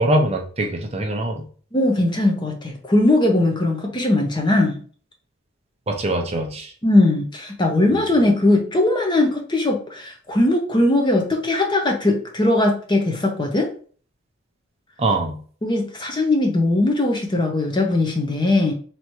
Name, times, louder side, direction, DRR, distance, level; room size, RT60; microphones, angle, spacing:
voice 1, 0.0-1.4 5.9-6.7 7.9-8.0 15.0-15.4, right 1 dB, 30° right, 2 dB, 0.6 m, -22 dB
voice 2, 1.7-4.8 6.8-13.7 15.6-18.7, left 2 dB, 20° left, 2 dB, 0.7 m, -19 dB
3.3 x 3.0 x 4.4 m, 0.43 s
head